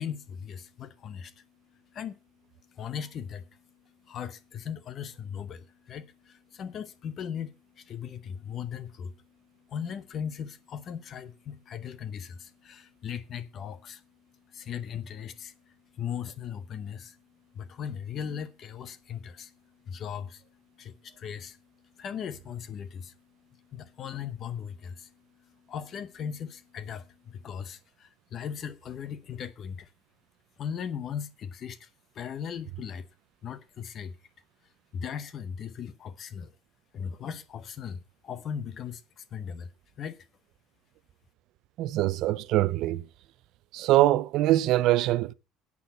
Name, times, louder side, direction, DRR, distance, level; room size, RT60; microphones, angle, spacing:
voice 1, 0.0-29.9 30.6-31.9 32.1-33.1 33.4-34.2 34.9-36.5 36.9-39.7 40.0-40.3, left 8 dB, 35° left, 0.8 m, -39 dB
voice 2, 41.8-43.0 43.7-45.3, right 15 dB, 50° right, 0.5 m, -23 dB
10.5 x 8.6 x 5.5 m
cardioid pair, 175°, 0 cm